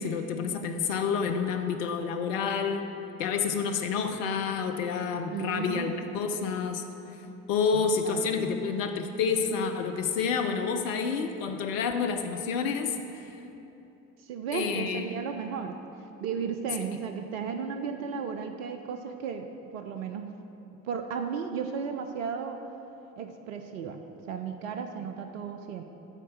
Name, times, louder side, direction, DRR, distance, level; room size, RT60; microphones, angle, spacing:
voice 1, 0.0-2.9 3.2-6.8 7.5-13.0 14.5-15.0, left 5 dB, 70° left, 5 dB, 0.6 m, -29 dB
voice 2, 5.3-5.9 7.7-8.6 14.2-15.8 16.2-19.5 19.7-20.3 20.8-22.6 23.2-25.8, right 6 dB, 75° right, 5 dB, 0.5 m, -35 dB
9.9 x 4.4 x 6.3 m, 2.9 s
figure-of-eight pair, 50°, 41 cm